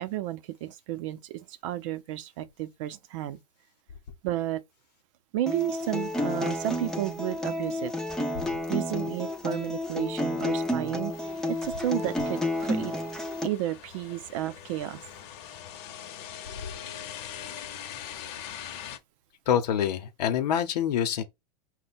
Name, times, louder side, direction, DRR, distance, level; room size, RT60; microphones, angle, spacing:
voice 1, 0.0-3.4 4.2-4.6 5.3-7.9 8.4-12.9 13.4-15.0, right 14 dB, 50° right, 0.6 m, -32 dB
Acoustic guitar, 5.5-13.5, left 1 dB, ahead, 0.4 m, -30 dB
sound 1, 11.1-19.0, left 10 dB, 40° left, 0.7 m, -43 dB
voice 2, 19.5-21.2, left 9 dB, 80° left, 0.8 m, -26 dB
5.2 x 2.2 x 4.2 m
supercardioid pair, 150°, 21 cm